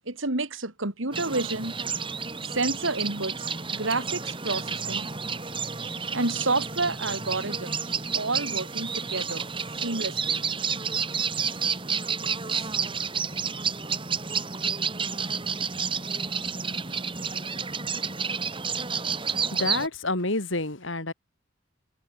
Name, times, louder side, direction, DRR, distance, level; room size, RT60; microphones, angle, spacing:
voice 1, 0.1-1.7 2.4-5.1 5.7-9.5 9.8-10.4 12.5-12.7, right 3 dB, 75° right, 3.0 m, -30 dB
sound 1, 1.1-19.9, right 5 dB, 25° right, 3.0 m, -30 dB
voice 2, 19.3-21.1, left 2 dB, 70° left, 3.6 m, -29 dB
head